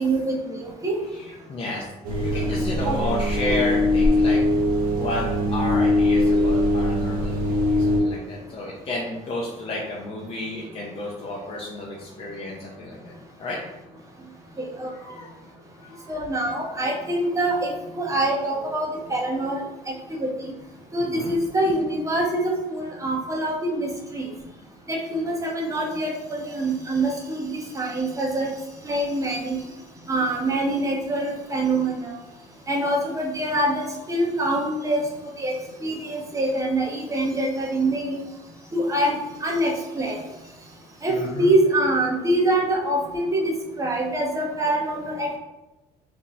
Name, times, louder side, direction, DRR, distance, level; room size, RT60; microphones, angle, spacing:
voice 1, 0.0-1.0 2.8-3.0 14.6-14.9 16.1-19.6 20.2-20.3 20.9-24.2 24.9-28.5 28.8-29.6 30.1-32.1 32.7-35.0 35.4-35.5 35.8-38.2 38.7-39.2 39.4-40.2 41.0-41.1 41.4-43.5 43.8-45.4, right 1 dB, 20° right, -1 dB, 0.9 m, -24 dB
voice 2, 1.0-4.4 5.0-13.6 14.7-15.3 15.8-16.3 16.9-17.3 21.1-21.4 21.6-21.7 29.2-29.3 29.6-29.7 33.6-33.7 41.1-41.5, left 2 dB, 40° left, -3 dB, 0.6 m, -32 dB
sound 1, 2.0-8.0, left 1 dB, 75° right, 0.7 m, -21 dB
2.8 x 2.3 x 3.9 m, 1.0 s
supercardioid pair, 85°, 15 cm